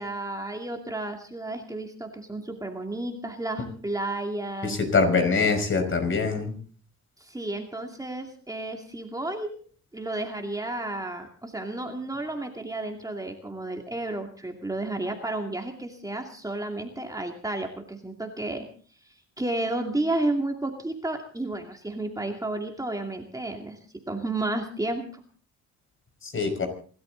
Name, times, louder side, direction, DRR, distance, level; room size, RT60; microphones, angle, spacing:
voice 1, 0.0-4.8 7.2-9.6 9.9-18.7 19.0-23.8 24.1-25.2, right 2 dB, 10° right, 3 dB, 2.5 m, -32 dB
voice 2, 4.6-6.5 26.2-26.7, left 4 dB, 40° left, 6 dB, 5.5 m, -24 dB
27.5 x 13.0 x 3.9 m, 0.43 s
cardioid pair, 90°, 30 cm